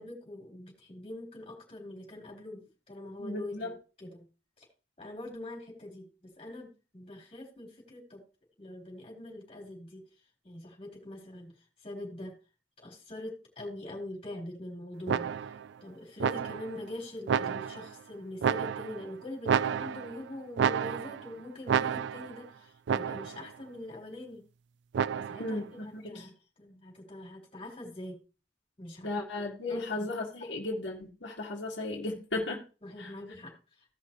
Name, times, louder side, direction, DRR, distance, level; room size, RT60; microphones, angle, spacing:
voice 1, 0.0-4.3 4.6-4.7 5.0-8.2 8.6-10.0 10.4-11.5 11.8-12.3 12.8-15.3 15.8-24.4 25.1-28.2 28.8-29.2 29.7-30.1 30.4-30.5 32.8-33.6, left 1 dB, 30° left, 4.3 m, -43 dB
voice 2, 3.2-3.7 25.4-26.3 29.0-32.6 33.0-33.1, left 2 dB, 80° left, 2.1 m, -35 dB
sound 1, 15.1-15.7 16.2-16.8 17.3-17.9 18.4-19.1 19.5-20.2 20.6-21.3 21.7-22.4 22.9-23.5 24.9-25.6, right 7 dB, 70° right, 0.3 m, -30 dB
16.5 x 5.7 x 3.1 m
head